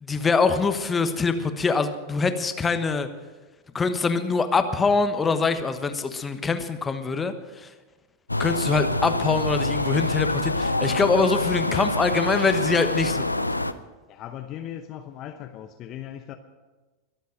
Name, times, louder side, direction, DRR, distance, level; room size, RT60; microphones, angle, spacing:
voice 1, 0.0-3.1 3.7-7.7 8.4-13.4, left 4 dB, 15° left, 9 dB, 1.2 m, -24 dB
sound 1, 8.3-13.7, left 2 dB, 85° left, 0.5 m, -26 dB
voice 2, 14.1-16.3, left 11 dB, 35° left, 7 dB, 0.8 m, -38 dB
22.0 x 8.1 x 6.5 m, 1.2 s
figure-of-eight pair, 90°, 0 cm